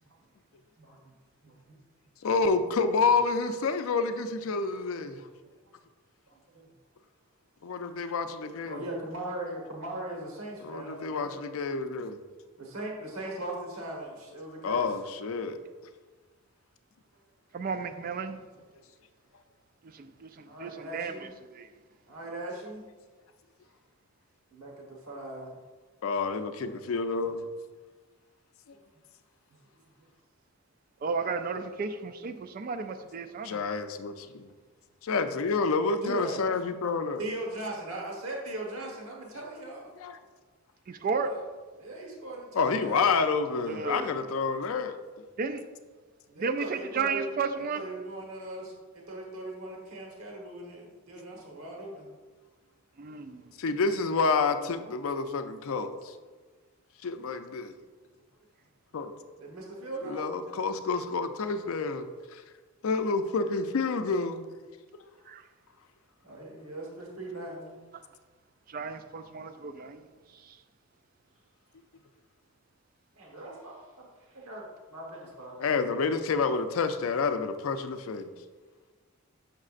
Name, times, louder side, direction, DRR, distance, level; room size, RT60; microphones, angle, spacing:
voice 1, 2.2-5.2 7.6-8.8 10.6-12.2 14.6-15.6 26.0-27.4 33.4-34.5 35.0-37.2 40.0-40.2 42.5-45.0 53.6-56.1 57.0-57.7 58.9-59.1 60.1-62.4 62.8-64.5 75.6-78.3, left 4 dB, 70° left, 9 dB, 0.4 m, -29 dB
voice 2, 6.3-6.7 8.6-11.4 12.6-14.8 20.4-21.3 22.1-22.8 24.5-25.6 28.7-28.8 36.0-36.5 37.2-39.9 41.2-41.4 41.8-43.1 46.3-52.1 59.4-60.3 66.2-67.8 73.2-75.7, right 1 dB, 75° right, -1 dB, 1.2 m, -39 dB
voice 3, 17.5-18.4 19.9-21.1 21.5-21.7 31.0-33.6 40.9-41.3 43.7-44.2 45.4-45.6 46.4-47.9 53.0-53.4 65.3-65.4 68.7-70.0, right 5 dB, 40° right, 9 dB, 0.3 m, -33 dB
6.5 x 6.3 x 2.4 m, 1.4 s
head